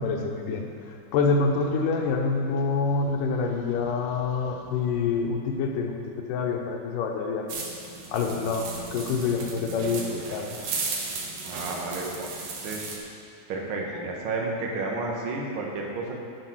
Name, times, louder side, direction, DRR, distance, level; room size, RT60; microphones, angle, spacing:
voice 1, 0.0-7.6 8.1-10.7, left 4 dB, 90° left, 2 dB, 2.6 m, -27 dB
sound 1, 7.5-13.0, right 4 dB, 70° right, 2.6 m, -35 dB
voice 2, 11.5-13.0 13.5-16.1, right 3 dB, 50° right, -1 dB, 1.7 m, -32 dB
9.8 x 7.4 x 6.1 m, 2.6 s
omnidirectional pair, 3.7 m